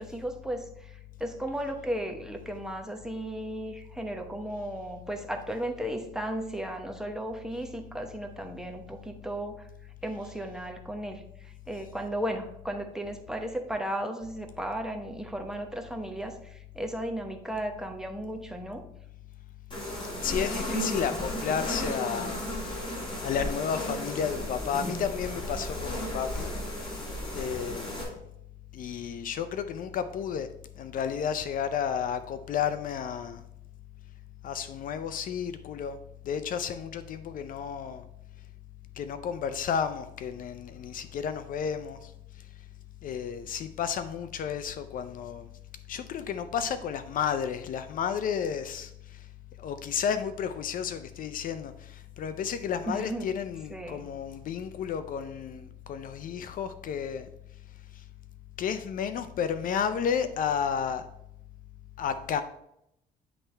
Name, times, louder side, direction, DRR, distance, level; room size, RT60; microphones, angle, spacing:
voice 1, 0.0-9.7 10.0-18.8 52.9-53.3 53.7-54.0, right 1 dB, 5° right, 4 dB, 0.9 m, -35 dB
sound 1, 19.7-28.0, left 1 dB, 30° left, 2.8 m, -34 dB
voice 2, 20.2-22.8 23.2-26.5 26.8-26.9 27.3-28.2 28.7-30.5 30.8-33.4 34.4-36.0 36.2-38.0 39.0-42.1 43.0-45.5 45.9-49.2 49.6-57.3 58.0-58.1 58.6-61.0 62.0-62.4, left 7 dB, 55° left, 11 dB, 0.5 m, -32 dB
9.9 x 3.4 x 4.3 m, 0.79 s
cardioid pair, 110°, 17 cm